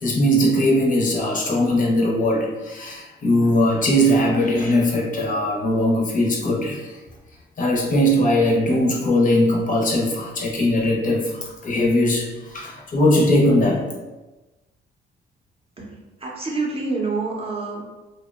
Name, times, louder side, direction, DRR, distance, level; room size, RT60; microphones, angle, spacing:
voice 1, 0.0-7.0 7.6-13.9, left 1 dB, 40° left, -1 dB, 0.6 m, -20 dB
voice 2, 16.2-17.8, right 3 dB, 30° right, -2 dB, 0.6 m, -26 dB
2.7 x 2.0 x 2.3 m, 1.1 s
cardioid pair, 95°, 20 cm